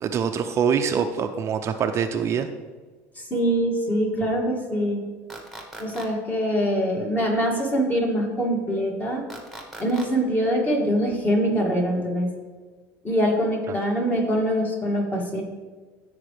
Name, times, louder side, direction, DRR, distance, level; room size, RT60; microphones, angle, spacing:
voice 1, 0.0-2.5, right 7 dB, 40° right, 7 dB, 0.5 m, -24 dB
voice 2, 3.2-5.0 5.8-9.2 9.8-12.3 13.0-15.4, equal, 25° left, -1 dB, 2.3 m, -24 dB
sound 1, 5.3-6.1 9.3-10.1, right 1 dB, 5° left, 1.5 m, -39 dB
14.5 x 4.8 x 3.4 m, 1.4 s
supercardioid pair, 115°, 7 cm